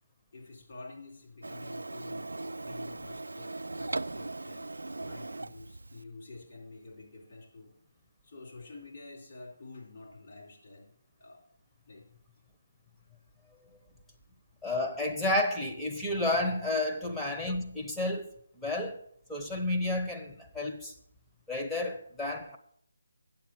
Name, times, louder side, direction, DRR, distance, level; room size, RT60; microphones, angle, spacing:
voice 1, 0.3-3.5 3.8-7.7 8.2-10.9 11.2-11.5 11.9-12.1 13.0-13.1 13.6-13.7 16.9-17.1, left 3 dB, 45° left, 3.5 m, -49 dB
Printer, 1.4-6.0, right 2 dB, 85° right, 0.3 m, -39 dB
voice 2, 14.6-19.0 19.3-20.9 21.5-22.6, left 2 dB, 5° left, 0.9 m, -31 dB
8.8 x 7.3 x 6.1 m
figure-of-eight pair, 160°, 0 cm